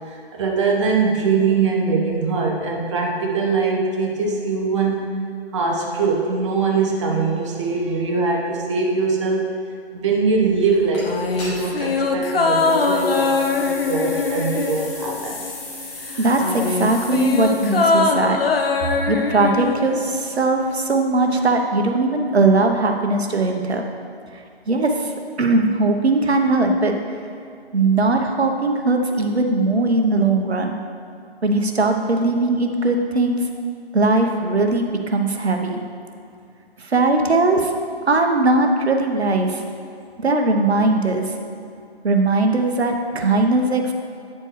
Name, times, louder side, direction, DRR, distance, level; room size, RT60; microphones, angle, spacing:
voice 1, 0.1-5.1 5.5-9.5 9.9-15.5 18.8-18.9 43.3-43.4, right 4 dB, 30° right, -1 dB, 0.9 m, -22 dB
sound 1, 10.9-11.0 11.4-12.0 12.5-18.1, left 2 dB, 25° left, 1.9 m, -36 dB
sound 2, 11.0-15.8 16.1-20.4 20.7-20.8, left 4 dB, 60° left, 0.7 m, -22 dB
voice 2, 16.2-18.4 19.1-23.9 24.7-25.1 25.4-27.0 27.7-30.8 31.4-33.4 33.9-35.8 36.8-37.7 38.1-39.6 40.2-41.3 42.0-43.9, right 2 dB, 75° right, 4 dB, 1.0 m, -19 dB
9.1 x 7.5 x 3.2 m, 2.4 s
figure-of-eight pair, 145°, 32 cm